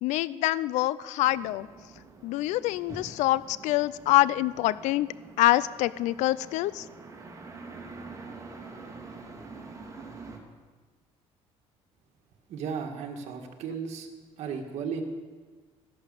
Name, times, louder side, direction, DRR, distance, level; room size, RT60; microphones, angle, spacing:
voice 1, 0.0-1.7 2.2-5.1 5.4-6.9, left 16 dB, 80° left, 18 dB, 0.4 m, -25 dB
sound 1, 1.2-10.4, right 3 dB, 30° right, 2.2 m, -46 dB
voice 2, 12.5-14.1 14.4-15.0, right 6 dB, 65° right, 3 dB, 1.7 m, -35 dB
13.0 x 11.5 x 6.7 m, 1.4 s
cardioid pair, 125°, 12 cm